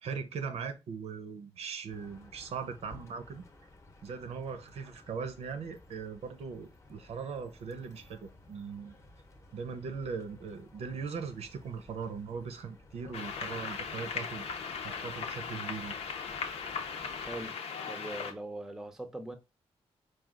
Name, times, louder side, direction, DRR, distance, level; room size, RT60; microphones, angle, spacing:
voice 1, 0.0-3.5 4.0-9.0 9.5-14.5 14.8-15.9, right 5 dB, 75° right, 0.7 m, -40 dB
sound 1, 1.9-17.5, left 2 dB, 25° left, 0.8 m, -56 dB
sound 2, 13.1-18.3, left 6 dB, 75° left, 0.7 m, -38 dB
voice 2, 17.3-17.6 17.8-19.4, right 2 dB, 5° right, 0.6 m, -41 dB
4.8 x 2.4 x 3.7 m
wide cardioid pair, 130°, 11 cm